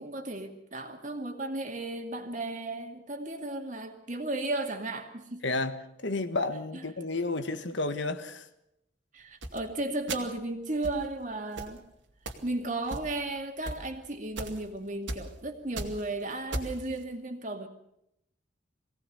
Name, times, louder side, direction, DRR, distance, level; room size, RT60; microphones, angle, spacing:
voice 1, 0.0-5.4 6.7-6.8 9.1-11.8 12.4-17.7, right 2 dB, 40° right, 2.5 m, -35 dB
voice 2, 5.4-8.5, left 2 dB, 75° left, 1.5 m, -31 dB
sound 1, 9.4-9.6 10.1-10.4 10.8-11.0 11.6-11.8 12.3-12.5 12.9-13.3 13.6-13.8 14.4-14.6 15.1-15.3 15.6-16.0 16.5-16.8, right 2 dB, 80° right, 2.4 m, -36 dB
23.0 x 17.5 x 6.9 m
head